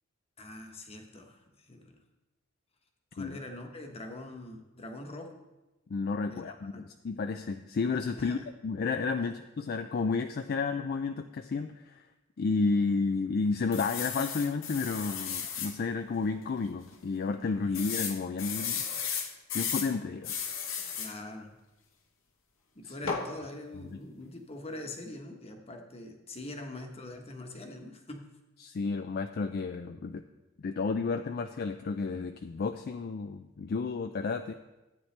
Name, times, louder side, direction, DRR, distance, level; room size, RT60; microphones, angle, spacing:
voice 1, 0.4-1.9 3.1-5.4 6.3-6.9 8.2-8.5 9.2-9.3 20.9-21.5 22.7-28.3, left 1 dB, 30° left, 4 dB, 1.1 m, -43 dB
voice 2, 5.9-12.0 12.4-18.9 19.5-20.3 22.8-22.9 28.6-30.2 30.6-34.5, left 4 dB, 50° left, 7 dB, 0.4 m, -31 dB
sound 1, 13.7-15.7 16.3-16.4 16.6-16.7 17.7-19.9 20.2-21.1 23.1-23.3, left 7 dB, 70° left, 1.1 m, -34 dB
13.0 x 8.8 x 3.3 m, 1.0 s
head